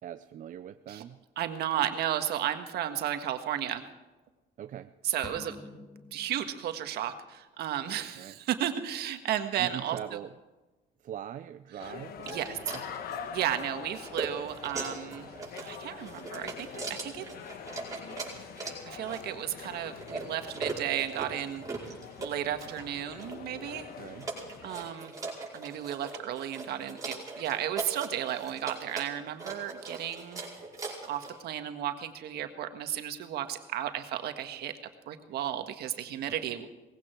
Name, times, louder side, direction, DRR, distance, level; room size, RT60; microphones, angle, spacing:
voice 1, 0.0-1.2 4.6-4.9 8.1-8.4 9.6-10.3 11.0-13.0 24.0-24.3 36.3-36.5, right 10 dB, 50° right, 10 dB, 0.6 m, -42 dB
voice 2, 1.4-3.9 5.0-5.6 6.1-10.0 11.8-11.9 12.3-12.6 13.3-15.3 15.6-17.2 18.9-21.7 22.2-23.9 24.6-25.2 25.5-30.4 31.1-34.7 35.1-36.7, right 11 dB, 75° right, 7 dB, 1.6 m, -33 dB
sound 1, 5.2-7.0, left 2 dB, 20° left, 1.5 m, -48 dB
sound 2, 11.8-24.9, left 7 dB, 65° left, 1.3 m, -45 dB
sound 3, 12.2-31.4, right 3 dB, 20° right, 5.1 m, -40 dB
19.5 x 16.0 x 4.6 m, 1.2 s
cardioid pair, 110°, 17 cm